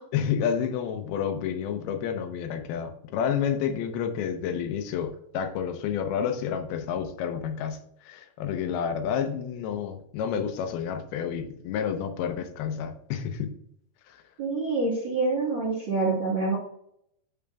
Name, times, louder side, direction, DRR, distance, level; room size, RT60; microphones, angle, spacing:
voice 1, 0.1-13.5 14.1-14.2, left 8 dB, 80° left, 7 dB, 2.7 m, -30 dB
voice 2, 14.4-16.5, right 3 dB, 50° right, -4 dB, 1.5 m, -26 dB
8.6 x 7.8 x 2.3 m, 0.71 s
omnidirectional pair, 4.5 m